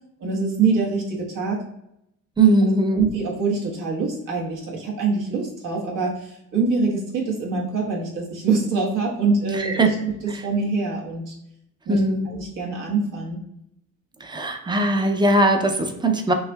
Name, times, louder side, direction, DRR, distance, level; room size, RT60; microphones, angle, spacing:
voice 1, 0.2-1.6 2.9-9.9 10.2-11.3 11.9-12.0 12.2-13.4, right 4 dB, 70° right, -2 dB, 1.3 m, -24 dB
voice 2, 2.4-3.0 9.6-9.9 10.3-10.4 11.9-12.3 14.2-16.3, right 2 dB, 15° right, 5 dB, 0.5 m, -20 dB
6.2 x 2.7 x 2.3 m, 0.80 s
cardioid pair, 115°, 34 cm